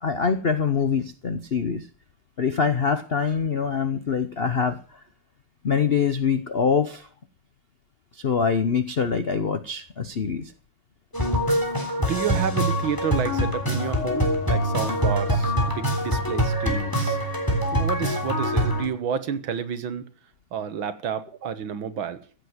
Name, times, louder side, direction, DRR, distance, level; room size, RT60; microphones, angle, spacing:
voice 1, 0.0-1.9 2.4-5.0 5.6-7.1 8.1-10.5, left 6 dB, 60° left, 11 dB, 0.6 m, -24 dB
sound 1, 11.1-18.9, equal, 10° left, 3.5 m, -24 dB
voice 2, 12.0-17.2 17.7-20.0 20.5-22.2, right 7 dB, 65° right, 11 dB, 1.9 m, -30 dB
15.5 x 8.2 x 7.9 m, 0.41 s
omnidirectional pair, 2.4 m